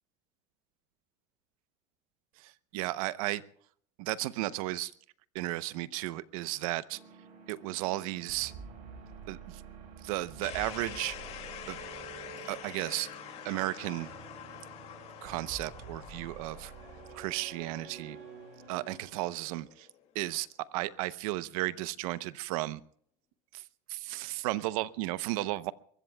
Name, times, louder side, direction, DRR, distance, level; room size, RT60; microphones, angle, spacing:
voice 1, 2.7-3.4 4.0-4.9 5.3-7.0 7.5-8.5 9.3-9.6 10.0-11.2 11.7-11.8 12.5-13.1 13.4-14.1 15.2-16.7 17.1-18.2 18.7-19.9 20.1-20.5 20.7-22.8 23.5-23.6 23.9-25.7, right 17 dB, 80° right, 16 dB, 0.9 m, -34 dB
sound 1, 6.9-19.0, right 5 dB, 50° right, 5.2 m, -49 dB
sound 2, 10.4-20.2, left 10 dB, 35° left, 2.5 m, -47 dB
23.5 x 21.5 x 2.3 m, 0.62 s
cardioid pair, 170°, 18 cm